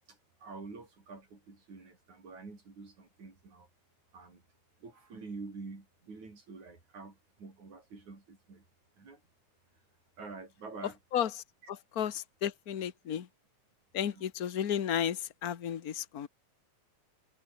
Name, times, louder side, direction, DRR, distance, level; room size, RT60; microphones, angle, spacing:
voice 1, 0.1-3.7 4.1-4.4 4.8-8.6 9.0-9.2 10.2-11.0 14.0-14.3, right 4 dB, 75° right, 8.0 m, -47 dB
voice 2, 11.1-13.3 13.9-16.3, left 9 dB, 45° left, 1.2 m, -33 dB
omnidirectional pair, 3.4 m